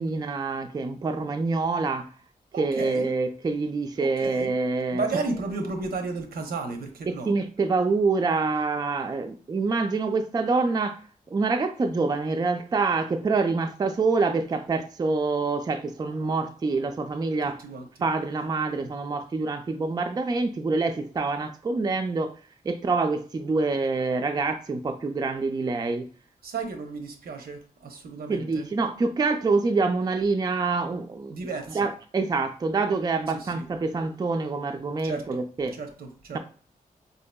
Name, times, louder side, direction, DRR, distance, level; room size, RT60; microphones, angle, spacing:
voice 1, 0.0-2.1 2.6-5.0 7.1-11.0 11.3-17.6 18.0-22.3 22.6-26.1 28.3-31.3 31.7-35.7 36.3-36.4, right 3 dB, 25° right, 0.3 m, -26 dB
voice 2, 2.5-3.1 4.0-4.6 4.9-7.3 17.6-18.1 26.4-28.7 31.3-31.9 33.3-33.6 35.0-35.4 35.7-36.4, right 3 dB, 85° right, 0.7 m, -33 dB
4.6 x 2.7 x 2.2 m
wide cardioid pair, 125°, 15 cm